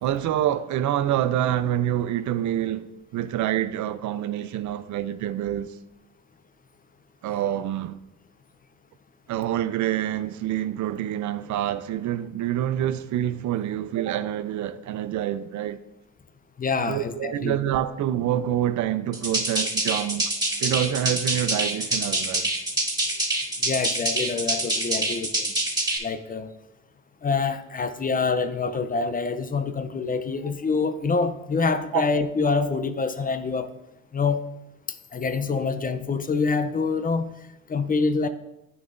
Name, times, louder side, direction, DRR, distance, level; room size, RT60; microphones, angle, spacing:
voice 1, 0.0-5.8 7.2-8.0 9.3-15.8 16.9-20.3 20.6-22.5 31.9-32.0, right 11 dB, 75° right, 0.5 m, -27 dB
voice 2, 16.6-17.5 23.6-25.5 26.0-26.5 27.2-33.7 34.1-34.5 34.9-37.3 37.7-38.3, left 4 dB, 30° left, 0.5 m, -26 dB
sound 1, 19.1-26.0, right 2 dB, 15° right, 1.7 m, -26 dB
9.1 x 6.9 x 2.6 m
cardioid pair, 90°, 30 cm